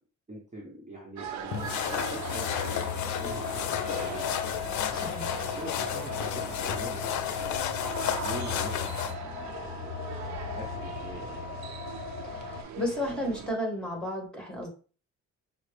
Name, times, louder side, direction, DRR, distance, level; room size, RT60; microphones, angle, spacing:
voice 1, 0.3-4.3 5.3-9.9 10.5-11.6, right 1 dB, 25° right, -2 dB, 1.0 m, -44 dB
sound 1, 1.2-13.5, right 7 dB, 65° right, 0.6 m, -41 dB
sound 2, 1.5-9.1, left 9 dB, 75° left, 0.6 m, -33 dB
sound 3, 1.5-12.6, left 6 dB, 45° left, 0.8 m, -37 dB
voice 2, 4.9-5.3 12.3-14.7, left 1 dB, 5° left, 0 dB, 1.7 m, -33 dB
5.6 x 2.0 x 3.3 m, 0.37 s
cardioid pair, 90°, 30 cm